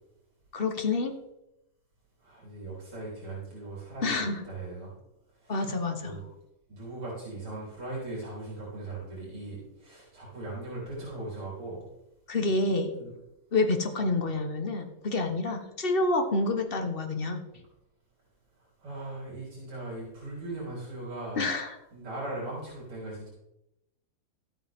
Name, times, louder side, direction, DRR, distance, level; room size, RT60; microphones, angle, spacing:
voice 1, 0.5-1.1 4.0-4.4 5.5-6.1 12.3-12.9 13.5-17.4 21.4-21.8, left 2 dB, 35° left, 5 dB, 1.0 m, -28 dB
voice 2, 2.2-4.9 5.4-5.7 6.0-6.2 6.7-11.9 12.9-13.1 18.8-21.5 21.9-23.3, right 2 dB, 80° right, -5 dB, 4.8 m, -39 dB
14.0 x 8.6 x 3.6 m, 0.89 s
omnidirectional pair, 2.4 m